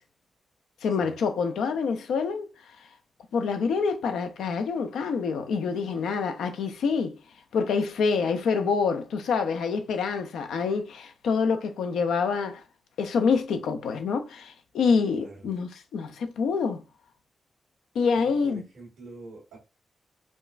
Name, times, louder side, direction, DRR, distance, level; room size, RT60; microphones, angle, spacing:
voice 1, 0.8-2.5 3.3-7.2 7.5-12.6 13.0-16.8 17.9-18.6, left 5 dB, 85° left, 0.4 m, -26 dB
voice 2, 15.2-15.5 18.1-19.6, right 2 dB, 90° right, 1.2 m, -45 dB
5.0 x 2.3 x 2.4 m
supercardioid pair, 45°, 0 cm